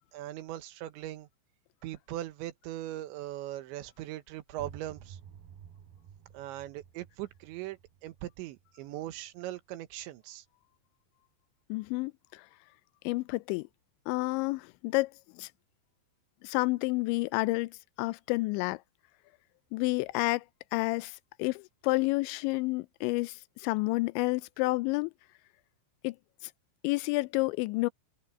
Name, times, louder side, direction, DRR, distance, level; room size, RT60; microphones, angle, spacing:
voice 1, 0.1-1.3 1.8-5.2 6.3-10.4, right 14 dB, 85° right, 3.5 m, -40 dB
sound 1, 4.5-10.1, right 8 dB, 65° right, 4.1 m, -53 dB
voice 2, 11.7-12.4 13.0-13.7 14.1-15.5 16.4-18.8 19.7-20.4 20.7-25.1 26.0-26.2 26.8-27.9, left 23 dB, 90° left, 2.9 m, -30 dB
omnidirectional pair, 5.2 m